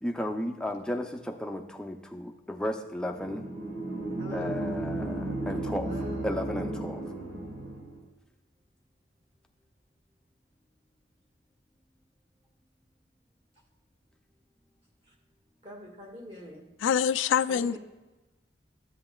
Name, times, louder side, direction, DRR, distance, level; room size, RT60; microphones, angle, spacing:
voice 1, 0.0-3.5 4.3-5.9 6.2-7.1, left 1 dB, 5° left, 3 dB, 0.5 m, -34 dB
sound 1, 3.1-8.0, right 1 dB, 85° right, 1.5 m, -34 dB
voice 2, 4.2-4.5 5.8-6.6 15.0-15.1 15.6-16.7 17.5-17.8, equal, 30° right, -1 dB, 1.8 m, -43 dB
voice 3, 16.8-17.8, left 8 dB, 85° left, 15 dB, 0.3 m, -25 dB
13.5 x 7.6 x 2.3 m, 1.1 s
head